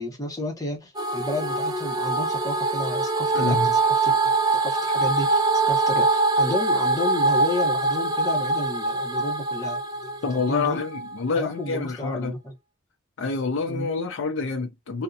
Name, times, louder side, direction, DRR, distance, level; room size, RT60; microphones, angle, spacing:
voice 1, 0.0-4.3 4.6-10.8 11.3-12.5 13.7-13.9, left 1 dB, 20° left, 0.8 m, -32 dB
sound 1, 0.9-11.2, right 3 dB, 20° right, 0.5 m, -23 dB
voice 2, 3.3-3.8 10.2-12.3 13.2-15.0, left 4 dB, 65° left, 0.5 m, -27 dB
2.6 x 2.1 x 2.3 m
head